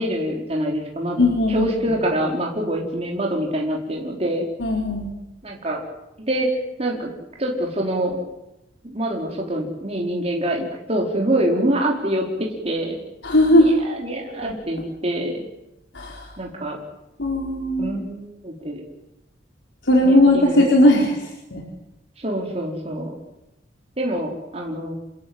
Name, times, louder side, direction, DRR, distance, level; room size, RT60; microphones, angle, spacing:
voice 1, 0.0-4.4 5.4-5.8 6.2-6.5 6.8-7.1 7.4-8.2 8.8-13.0 13.5-15.3 16.4-16.8 17.8-18.8 20.0-20.7 22.2-23.1 24.0-24.9, right 1 dB, 35° right, -1 dB, 4.7 m, -25 dB
voice 2, 1.2-1.7 4.6-5.1 13.2-13.7 15.9-16.3 17.2-18.0 19.9-21.2 21.5-21.6, left 1 dB, 80° left, -1 dB, 4.5 m, -17 dB
28.5 x 21.0 x 8.1 m, 0.91 s
head